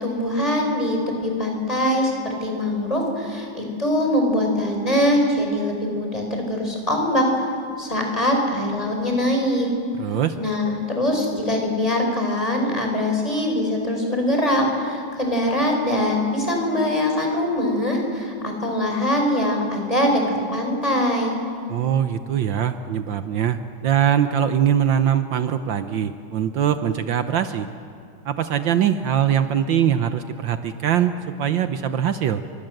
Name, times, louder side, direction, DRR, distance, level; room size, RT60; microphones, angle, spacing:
voice 1, 0.0-7.4 7.8-9.7 10.4-20.2 20.5-21.4, left 1 dB, 15° left, 1 dB, 5.5 m, -22 dB
voice 2, 10.0-10.4 21.7-27.7 28.2-32.4, right 9 dB, 70° right, 9 dB, 1.5 m, -22 dB
30.0 x 25.0 x 7.9 m, 2.6 s
omnidirectional pair, 2.2 m